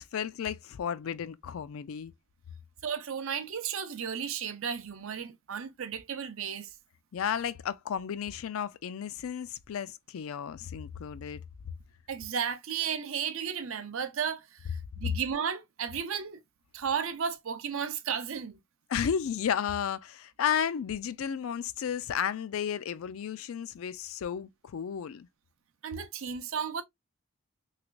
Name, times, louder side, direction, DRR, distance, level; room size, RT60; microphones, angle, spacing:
voice 1, 0.0-2.1 7.1-11.4 18.9-25.3, left 8 dB, 75° left, 0.4 m, -33 dB
voice 2, 2.8-6.7 12.1-16.4 16.7-18.6 25.8-26.8, right 7 dB, 70° right, 0.5 m, -34 dB
3.2 x 3.0 x 2.3 m
head